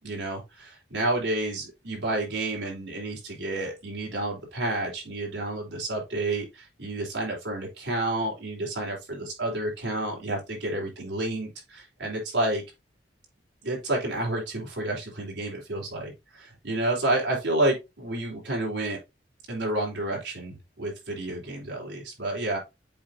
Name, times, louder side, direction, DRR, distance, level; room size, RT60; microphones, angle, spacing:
voice 1, 0.0-12.6 13.6-19.0 19.5-22.6, right 2 dB, 80° right, -2 dB, 3.5 m, -30 dB
7.7 x 5.0 x 2.6 m, 0.22 s
head